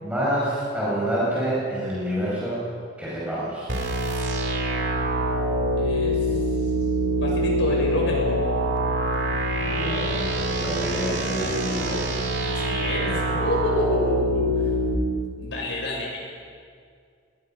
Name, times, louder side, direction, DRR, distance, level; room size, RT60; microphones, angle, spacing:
voice 1, 0.0-2.6 3.0-3.7 9.6-12.2, right 1 dB, 5° right, -8 dB, 6.0 m, -27 dB
sound 1, 3.7-15.0, equal, 55° right, 2.7 m, -25 dB
voice 2, 5.8-6.4 7.2-8.4 12.4-14.5 15.4-16.2, left 1 dB, 65° left, -2 dB, 6.4 m, -28 dB
24.0 x 19.5 x 5.8 m, 2.2 s
head